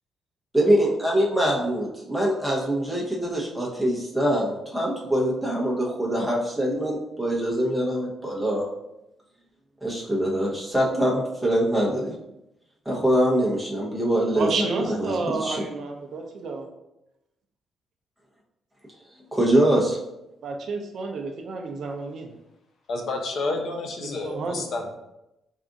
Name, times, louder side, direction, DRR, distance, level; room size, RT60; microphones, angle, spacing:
voice 1, 0.5-8.6 9.8-12.1 12.9-15.6 19.3-20.0, right 1 dB, ahead, -4 dB, 0.8 m, -24 dB
voice 2, 14.3-16.7 20.4-22.3 24.0-24.6, right 4 dB, 50° right, 3 dB, 0.5 m, -30 dB
voice 3, 22.9-24.9, left 2 dB, 55° left, 3 dB, 0.5 m, -29 dB
3.6 x 2.4 x 3.8 m, 0.89 s
cardioid pair, 165°, 0 cm